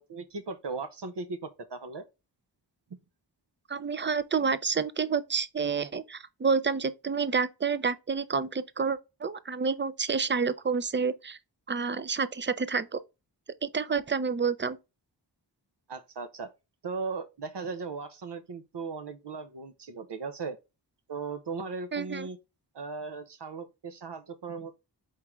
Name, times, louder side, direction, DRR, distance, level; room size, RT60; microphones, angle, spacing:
voice 1, 0.0-2.0 15.9-16.5 16.8-20.6 21.1-22.4 22.7-24.8, right 4 dB, 70° right, 0.8 m, -37 dB
voice 2, 3.7-11.4 11.7-13.0 13.6-14.8 21.9-22.3, right 5 dB, 25° right, 0.5 m, -29 dB
4.6 x 3.6 x 3.0 m
wide cardioid pair, 55°, 44 cm